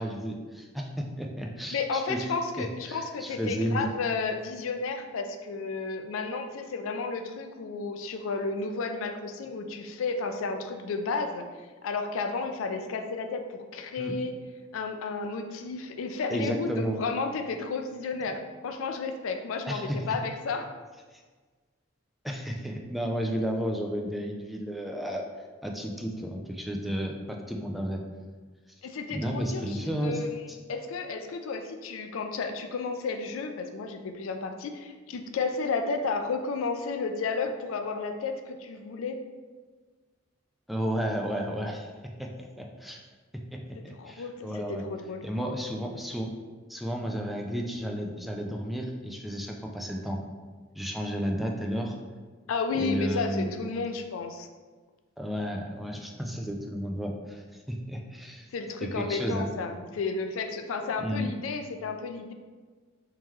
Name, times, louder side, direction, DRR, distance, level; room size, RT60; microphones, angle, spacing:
voice 1, 0.0-3.9 14.0-14.1 16.3-17.0 19.7-20.0 21.1-21.2 22.2-25.2 25.6-28.0 29.1-30.2 40.7-41.9 42.2-42.3 42.6-43.0 43.3-43.4 43.8-44.8 45.2-46.3 46.7-50.2 50.8-51.9 52.7-53.6 55.2-58.5 58.8-59.5 61.0-61.3, equal, ahead, 1 dB, 0.3 m, -32 dB
voice 2, 1.7-14.3 14.7-20.7 28.8-30.3 30.7-39.2 43.7-45.3 52.5-54.5 58.5-62.3, left 4 dB, 90° left, 6 dB, 0.4 m, -32 dB
3.6 x 2.9 x 3.1 m, 1.4 s
head